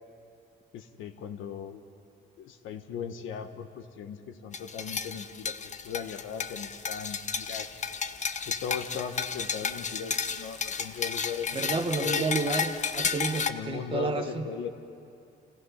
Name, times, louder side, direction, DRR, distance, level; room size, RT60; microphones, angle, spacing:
voice 1, 0.7-1.8 2.4-7.7 8.5-12.3 13.5-14.7, left 7 dB, 90° left, 7 dB, 1.3 m, -38 dB
sound 1, 4.5-13.5, left 6 dB, 35° left, 0.9 m, -32 dB
voice 2, 11.5-14.5, right 3 dB, 25° right, 4 dB, 1.3 m, -30 dB
28.0 x 16.5 x 5.8 m, 2.5 s
cardioid pair, 90°, 20 cm